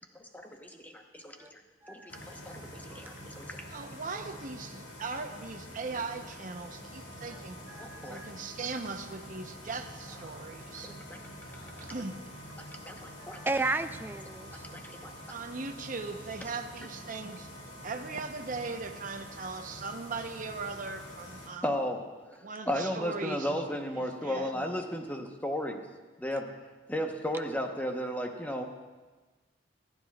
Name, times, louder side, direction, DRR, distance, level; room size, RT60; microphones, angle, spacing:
voice 1, 0.3-1.5 1.9-2.0 3.0-3.7 7.8-8.2 10.3-10.4 10.8-11.2 12.6-13.4 14.7-15.1 21.6-25.8 26.2-26.5 26.9-28.6, equal, 10° left, 1.0 m, -34 dB
sound 1, 2.1-21.5, equal, 90° left, 2.2 m, -46 dB
voice 2, 3.7-7.6 8.1-10.9 11.8-12.2 15.3-17.5 17.8-21.8 22.4-23.7 23.9-24.6, right 4 dB, 45° right, 0.9 m, -39 dB
voice 3, 7.8-8.3 13.2-14.6, right 2 dB, 10° right, 0.4 m, -33 dB
25.0 x 9.8 x 2.4 m
head